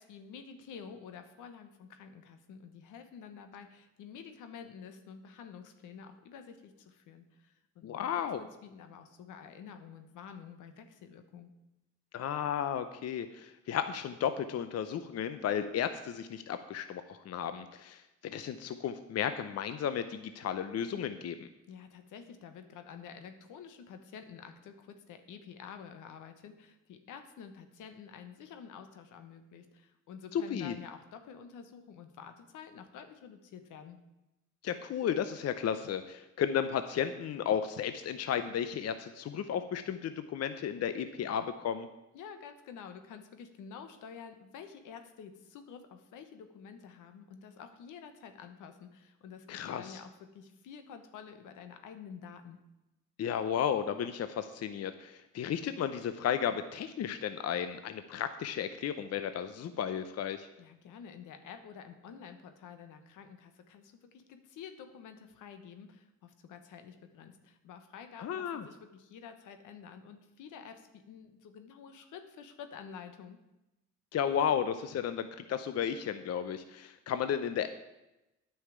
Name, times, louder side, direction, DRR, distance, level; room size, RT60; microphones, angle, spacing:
voice 1, 0.0-11.5 21.7-34.0 42.1-52.6 60.6-73.4, left 7 dB, 85° left, 8 dB, 1.3 m, -49 dB
voice 2, 7.8-8.4 12.1-21.5 30.3-30.8 34.6-41.9 49.5-50.0 53.2-60.5 68.2-68.6 74.1-77.7, left 8 dB, 55° left, 10 dB, 0.7 m, -34 dB
9.7 x 5.7 x 8.4 m, 0.96 s
cardioid pair, 90°, 30 cm